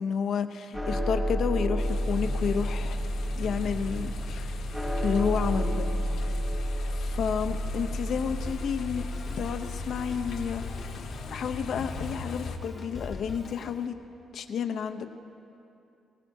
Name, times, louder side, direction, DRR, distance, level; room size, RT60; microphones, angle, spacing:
voice 1, 0.0-3.0 3.3-4.6 5.0-5.9 6.9-9.0 9.3-10.9 11.3-14.0 14.3-15.1, left 7 dB, 55° left, 8 dB, 0.7 m, -31 dB
sound 1, 0.7-11.2, equal, 10° right, 1.5 m, -31 dB
sound 2, 1.8-12.6, left 4 dB, 85° left, 1.4 m, -40 dB
Drum kit, 8.5-13.9, left 4 dB, 30° left, 0.9 m, -43 dB
19.5 x 19.5 x 2.7 m, 2.7 s
cardioid pair, 175°, 0 cm